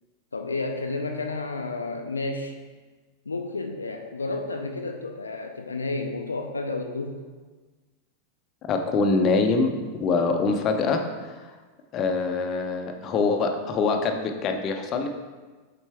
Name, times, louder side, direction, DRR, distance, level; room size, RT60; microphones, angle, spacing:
voice 1, 0.3-2.5 3.3-7.2, left 3 dB, 75° left, 4 dB, 0.4 m, -31 dB
voice 2, 8.7-11.4 11.9-15.1, left 4 dB, 30° left, 4 dB, 0.6 m, -24 dB
7.2 x 4.2 x 3.4 m, 1.3 s
figure-of-eight pair, 90°, 0 cm